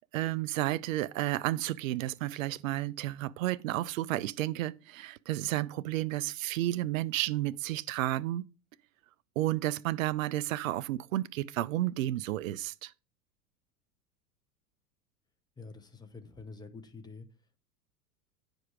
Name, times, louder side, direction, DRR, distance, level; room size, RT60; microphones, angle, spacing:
voice 1, 0.1-8.4 9.4-12.9, right 15 dB, 60° right, 0.5 m, -32 dB
voice 2, 15.6-17.3, left 4 dB, 10° left, 0.8 m, -47 dB
9.2 x 5.2 x 4.6 m
figure-of-eight pair, 85°, 47 cm